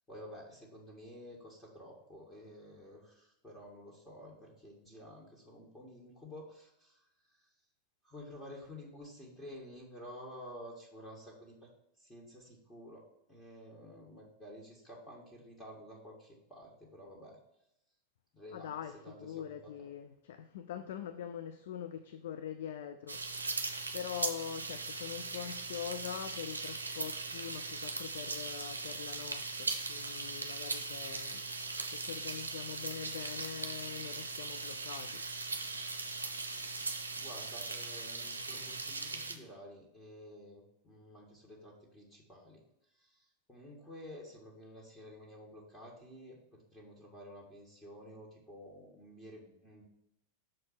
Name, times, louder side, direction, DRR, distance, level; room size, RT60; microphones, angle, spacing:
voice 1, 0.1-7.5 8.0-11.7 12.0-13.0 13.3-17.4 18.3-19.9 37.1-42.6 42.9-49.8, equal, 10° left, 1.6 m, -51 dB
voice 2, 18.5-23.4 23.9-31.5 31.8-35.2, left 9 dB, 55° left, 0.4 m, -43 dB
sound 1, 23.1-39.4, right 3 dB, 75° right, 0.6 m, -39 dB
6.0 x 4.4 x 4.4 m
figure-of-eight pair, 90°, 0 cm